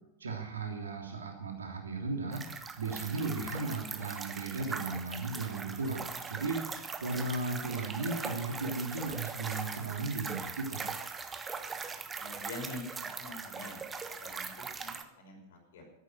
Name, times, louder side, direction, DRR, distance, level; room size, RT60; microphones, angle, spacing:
voice 1, 0.2-2.4 2.8-10.9, right 3 dB, 70° right, 1 dB, 3.4 m, -36 dB
sound 1, 2.3-15.0, right 5 dB, 15° right, 1.2 m, -41 dB
voice 2, 12.2-12.8 13.2-13.8 14.2-15.8, left 2 dB, 55° left, 1 dB, 5.7 m, -46 dB
14.0 x 11.0 x 6.4 m, 0.83 s
figure-of-eight pair, 90°, 0 cm